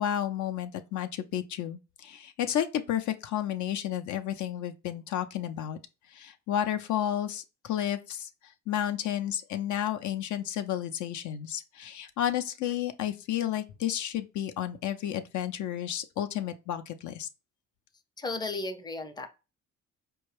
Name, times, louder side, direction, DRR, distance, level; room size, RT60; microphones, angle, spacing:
voice 1, 0.0-5.8 6.1-8.3 8.7-17.3, left 10 dB, 75° left, 0.5 m, -32 dB
voice 2, 18.2-19.3, left 3 dB, 15° left, 0.5 m, -34 dB
4.3 x 2.3 x 3.2 m
cardioid pair, 90°, 30 cm